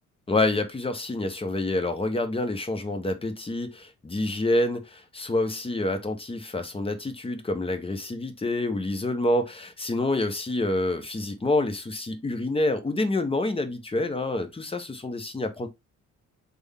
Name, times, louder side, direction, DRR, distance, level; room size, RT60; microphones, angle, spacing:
voice 1, 0.3-15.7, left 2 dB, 20° left, 0.8 m, -27 dB
3.5 x 2.2 x 3.5 m
cardioid pair, 90°, 30 cm